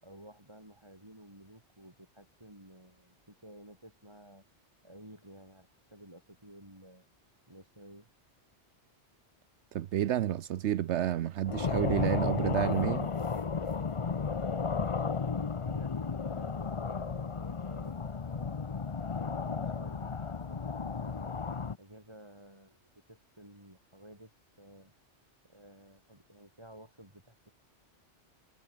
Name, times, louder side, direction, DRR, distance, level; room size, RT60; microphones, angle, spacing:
voice 1, 0.0-4.4 4.8-7.1 7.5-8.1 14.4-18.5 19.0-21.4 21.8-24.3 24.6-24.9 25.5-27.5, right 1 dB, 25° right, 6.1 m, -53 dB
voice 2, 9.7-13.1, right 11 dB, 80° right, 1.0 m, -30 dB
sound 1, 11.4-21.8, left 5 dB, 30° left, 0.7 m, -33 dB
omnidirectional pair, 1.2 m